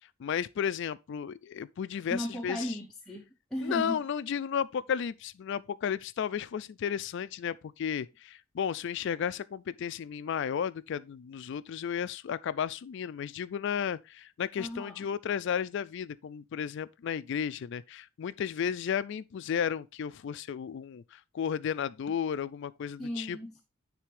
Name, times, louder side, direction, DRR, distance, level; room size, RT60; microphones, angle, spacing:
voice 1, 0.2-2.8 3.6-23.4, left 8 dB, 55° left, 0.3 m, -33 dB
voice 2, 2.1-3.3 3.5-3.9 14.6-14.9 23.0-23.6, equal, 5° left, 0.7 m, -35 dB
9.6 x 3.4 x 3.2 m
head